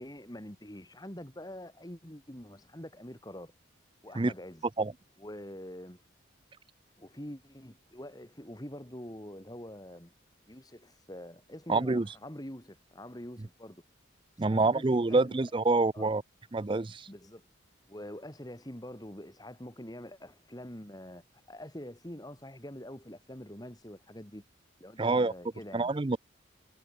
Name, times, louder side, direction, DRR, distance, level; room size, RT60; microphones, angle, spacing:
voice 1, 0.0-3.5 4.0-4.6 5.2-6.0 7.0-10.1 10.5-13.8 14.4-15.4 15.9-16.1 16.9-17.5 17.9-21.2 21.5-24.4 24.8-25.9, left 1 dB, 20° left, 2.7 m, -45 dB
voice 2, 11.7-12.1 14.4-16.2 16.5-17.1 25.0-25.3 25.7-26.2, right 3 dB, 25° right, 0.4 m, -26 dB
head